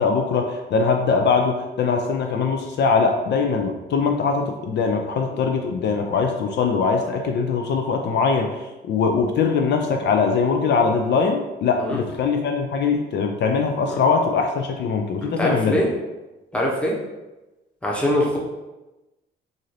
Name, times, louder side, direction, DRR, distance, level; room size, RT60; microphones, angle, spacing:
voice 1, 0.0-8.5 8.8-15.8, left 5 dB, 60° left, 4 dB, 0.4 m, -21 dB
voice 2, 15.2-15.9 16.5-16.9 17.8-18.4, equal, 5° left, -3 dB, 0.9 m, -22 dB
3.9 x 2.6 x 3.2 m, 1.1 s
cardioid pair, 90°, 20 cm